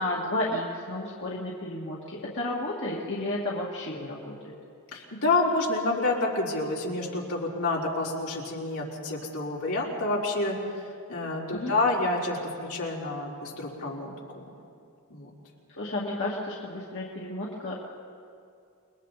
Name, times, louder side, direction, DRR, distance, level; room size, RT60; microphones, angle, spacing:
voice 1, 0.0-4.5 11.5-11.8 15.8-17.7, left 1 dB, 55° left, -4 dB, 2.3 m, -32 dB
voice 2, 4.9-10.6 11.1-14.5 15.1-15.3, left 2 dB, 75° left, -4 dB, 4.2 m, -28 dB
29.5 x 21.5 x 4.2 m, 2.4 s
head